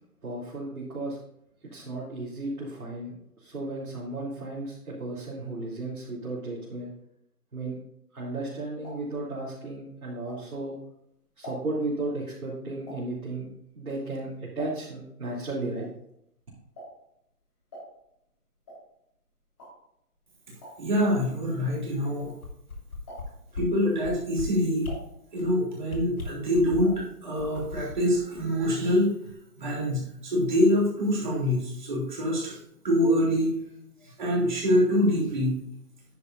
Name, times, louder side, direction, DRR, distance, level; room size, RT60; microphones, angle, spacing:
voice 1, 0.2-1.2 1.6-6.9 7.5-7.8 8.1-10.8 11.4-13.5 13.7-15.9, right 2 dB, 65° right, -7 dB, 3.1 m, -34 dB
sound 1, 8.3-10.8 11.2-15.1 15.4-22.7 23.0-23.6 24.0-25.8 26.1-27.1 27.4-27.5 27.8-27.9, right 1 dB, 15° left, 3.8 m, -47 dB
voice 2, 20.8-22.3 23.5-24.9 25.3-29.1 29.6-32.6 32.8-33.5 34.0-35.5, left 1 dB, 30° right, -4 dB, 3.0 m, -25 dB
sound 2, 22.2-23.2 23.5-23.7 24.0-24.4 24.8-25.0 25.3-25.5 25.9-27.0 27.4-29.0 29.3-29.4, left 4 dB, 65° left, 2.5 m, -38 dB
9.6 x 9.5 x 2.6 m, 0.77 s
hypercardioid pair, 175°, 46 cm